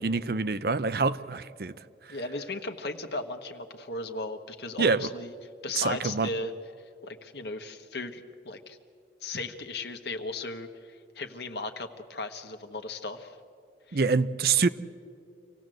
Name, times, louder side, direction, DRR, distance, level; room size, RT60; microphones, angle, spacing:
voice 1, 0.0-1.7 4.8-5.1 5.8-6.3 13.9-14.7, right 4 dB, 55° right, 15 dB, 0.6 m, -26 dB
voice 2, 2.1-5.3 5.6-6.5 7.0-8.8 9.2-13.4 13.9-14.0, left 2 dB, 70° left, 6 dB, 1.4 m, -36 dB
26.0 x 17.0 x 7.8 m, 2.4 s
head